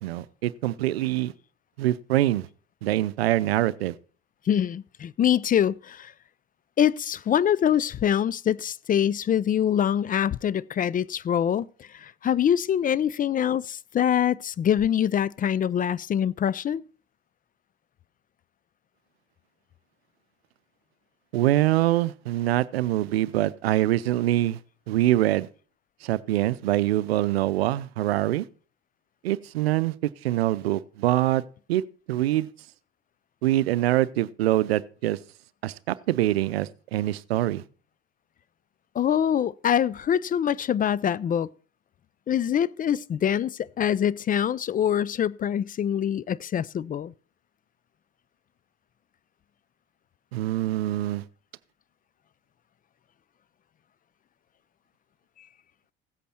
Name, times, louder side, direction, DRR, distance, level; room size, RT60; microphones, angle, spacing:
voice 1, 0.0-1.3 1.8-2.5 2.8-3.9 21.3-24.6 24.9-25.5 26.0-28.5 29.2-29.9 30.2-31.4 31.7-31.8 32.1-32.5 33.4-35.2 35.6-37.6 50.3-51.2, right 15 dB, 85° right, 0.6 m, -24 dB
voice 2, 4.5-6.1 6.8-16.8 38.9-41.5 42.3-47.1, left 9 dB, 30° left, 0.4 m, -24 dB
16.0 x 8.2 x 4.3 m
hypercardioid pair, 75°, 30 cm